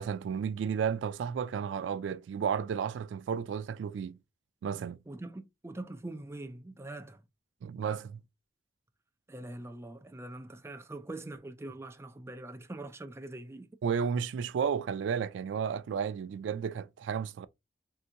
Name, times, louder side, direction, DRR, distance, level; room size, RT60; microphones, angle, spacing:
voice 1, 0.0-4.2 4.6-5.0 7.6-8.2 13.8-17.5, right 7 dB, 90° right, 0.3 m, -32 dB
voice 2, 5.1-7.2 9.3-13.7, right 2 dB, 15° right, 0.4 m, -43 dB
3.4 x 2.8 x 2.5 m
head